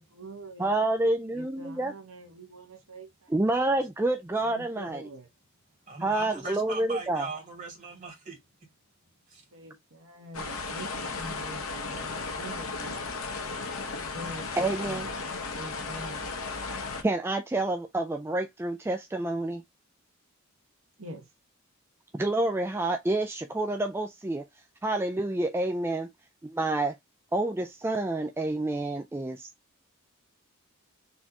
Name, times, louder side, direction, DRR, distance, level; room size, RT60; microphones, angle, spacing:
voice 1, 0.0-0.7 1.3-3.3 3.6-3.9 4.4-5.3 9.5-13.0 13.9-16.3 21.0-21.3, right 1 dB, 75° right, 1.3 m, -45 dB
voice 2, 0.6-1.9 3.3-5.0 6.0-7.3 14.6-15.1 17.0-19.6 22.1-24.5 24.8-26.1 26.4-26.9 27.3-29.5, right 2 dB, 10° right, 0.3 m, -28 dB
voice 3, 5.9-8.4 9.3-9.4, right 3 dB, 35° right, 2.7 m, -39 dB
sound 1, 10.3-17.0, left 4 dB, 75° left, 1.1 m, -35 dB
4.3 x 3.5 x 2.8 m
head